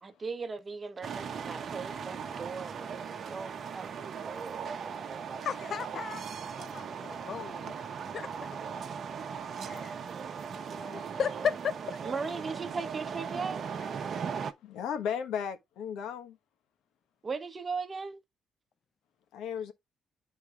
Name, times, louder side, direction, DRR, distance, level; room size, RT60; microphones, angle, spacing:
voice 1, 0.0-3.0 3.3-5.1 12.1-13.6 17.2-18.2, right 4 dB, 35° right, 1.0 m, -38 dB
sound 1, 1.0-14.5, right 6 dB, 55° right, 0.9 m, -38 dB
voice 2, 5.4-6.2 6.6-7.8 8.1-8.3 8.8-8.9 9.6-10.0 10.5-12.0, left 7 dB, 55° left, 0.4 m, -35 dB
voice 3, 14.6-16.4 19.3-19.7, left 8 dB, 85° left, 1.1 m, -35 dB
11.0 x 4.0 x 2.3 m
cardioid pair, 90°, 0 cm